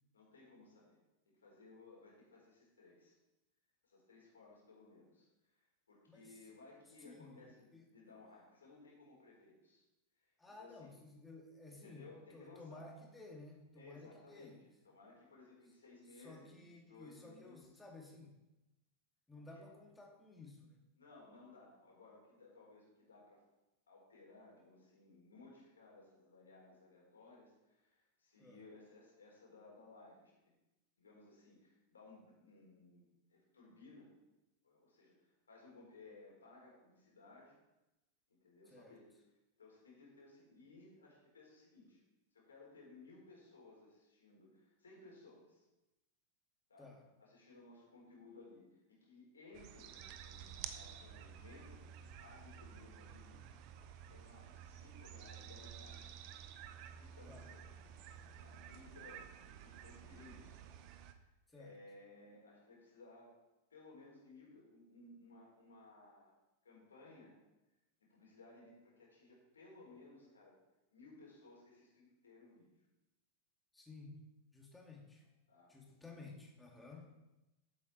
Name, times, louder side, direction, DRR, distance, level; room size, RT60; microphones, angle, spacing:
voice 1, 0.1-1.0 1.3-3.1 3.8-9.8 10.2-11.0 11.7-12.9 13.7-14.6 14.8-17.7 19.3-19.7 21.0-23.4 23.9-30.5 31.0-34.1 34.6-37.6 38.3-39.0 39.6-42.0 42.3-45.6 46.7-46.9 47.2-51.8 52.2-53.5 54.1-56.1 56.8-57.6 58.4-60.6 61.5-63.3 63.7-66.4 66.6-67.3 68.0-70.5 70.9-72.7 75.5-75.7, left 3 dB, 70° left, -2 dB, 4.3 m, -60 dB
voice 2, 6.1-6.4 7.0-7.4 7.7-7.9 10.4-14.5 16.1-18.3 19.3-20.9 28.4-28.6 38.7-39.0 46.8-47.0 57.3-57.5 61.5-61.8 73.7-74.2 74.5-75.3 75.7-77.1, left 3 dB, 10° left, -1 dB, 2.5 m, -55 dB
sound 1, 49.5-61.1, right 8 dB, 45° right, 0.9 m, -52 dB
13.0 x 8.2 x 4.3 m, 0.99 s
figure-of-eight pair, 90°, 0 cm